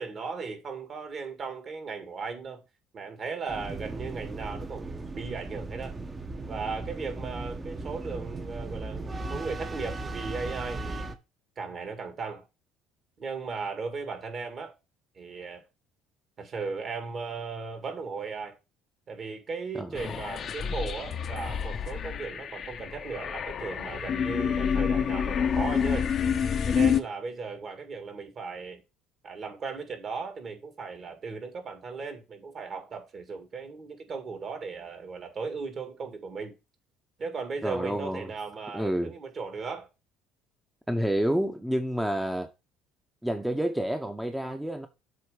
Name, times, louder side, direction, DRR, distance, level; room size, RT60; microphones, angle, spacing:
voice 1, 0.0-2.6 2.9-6.0 6.5-11.1 11.6-12.5 13.2-14.8 15.2-15.6 16.4-18.6 19.1-26.1 26.7-28.8 29.2-36.6 37.2-39.9, right 4 dB, 45° right, 1.9 m, -37 dB
sound 1, 3.5-11.1, right 2 dB, 25° right, 1.0 m, -37 dB
sound 2, 20.0-27.0, left 7 dB, 50° left, 0.7 m, -28 dB
voice 2, 37.6-38.3 38.7-39.1 40.9-42.5 43.2-44.9, right 1 dB, 5° right, 0.8 m, -29 dB
7.7 x 3.1 x 4.9 m
hypercardioid pair, 70°, 0 cm